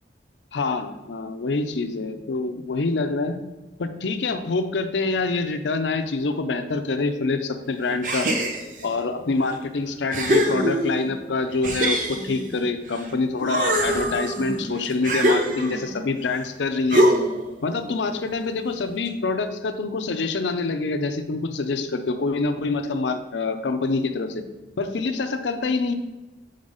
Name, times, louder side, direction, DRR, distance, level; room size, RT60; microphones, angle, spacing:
voice 1, 0.5-3.4 3.8-8.3 8.8-17.1 17.6-24.4 24.8-25.9, left 3 dB, 90° left, 8 dB, 0.6 m, -26 dB
sound 1, 8.0-8.9 9.5-9.6 10.1-11.1 11.6-13.1 13.4-15.9 16.9-17.5, right 1 dB, 45° right, 0.7 m, -23 dB
5.1 x 4.0 x 5.4 m, 1.1 s
head